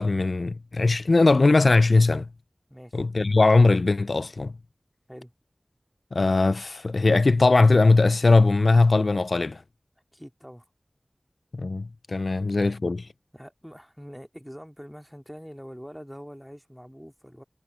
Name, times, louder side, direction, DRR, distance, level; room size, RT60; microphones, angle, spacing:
voice 1, 0.0-2.3 2.9-4.5 6.1-9.6 11.5-13.1, left 3 dB, 80° left, 0.3 m, -20 dB
voice 2, 2.7-3.0 5.1-5.3 10.1-10.6 12.3-12.4 13.3-17.4, equal, ahead, 2.4 m, -44 dB
wide cardioid pair, 40°, 0 cm